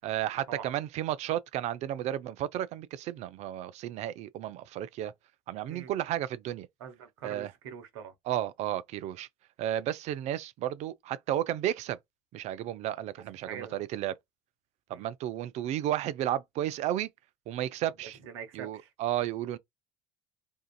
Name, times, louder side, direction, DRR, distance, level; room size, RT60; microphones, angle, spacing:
voice 1, 0.0-5.1 5.5-6.7 7.2-7.5 8.3-9.3 9.6-12.0 12.3-14.1 14.9-17.1 17.5-18.2 18.5-19.6, right 12 dB, 55° right, 0.4 m, -33 dB
voice 2, 6.8-8.1 13.4-13.8 14.9-15.1 18.2-18.9, right 7 dB, 75° right, 0.8 m, -44 dB
2.7 x 2.4 x 2.3 m
hypercardioid pair, 75°, 14 cm